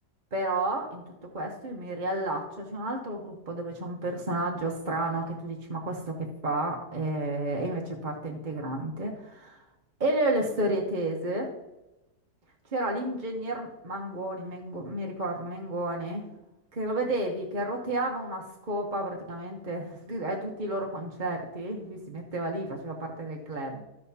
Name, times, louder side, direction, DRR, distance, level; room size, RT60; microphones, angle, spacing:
voice 1, 0.3-1.0 1.3-9.6 10.0-11.5 12.7-16.3 16.7-23.8, right 1 dB, 35° right, 0 dB, 0.9 m, -31 dB
14.5 x 5.5 x 2.8 m, 0.95 s
omnidirectional pair, 1.8 m